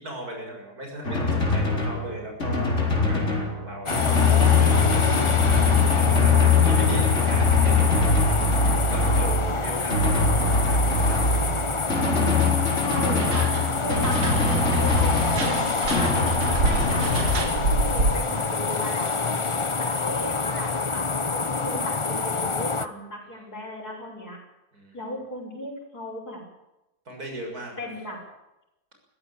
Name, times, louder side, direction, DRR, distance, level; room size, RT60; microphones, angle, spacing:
voice 1, 0.0-2.7 3.0-8.5 8.9-11.5 21.5-21.7 23.4-23.5 24.7-25.0 27.1-27.8, right 1 dB, 70° right, 2 dB, 7.0 m, -38 dB
Drum, 1.0-17.4, left 4 dB, 50° left, 4.4 m, -22 dB
sound 1, 3.9-22.9, left 4 dB, 25° left, 0.7 m, -27 dB
voice 2, 12.8-13.5 13.8-15.6 16.0-16.1 16.4-17.0 17.4-19.3 19.8-21.0 21.3-24.4 24.9-26.4 27.8-28.2, left 1 dB, 75° left, 0 dB, 6.7 m, -36 dB
sound 2, 13.2-18.4, right 3 dB, 85° right, 2.3 m, -29 dB
22.0 x 15.5 x 8.5 m, 0.92 s
omnidirectional pair, 1.7 m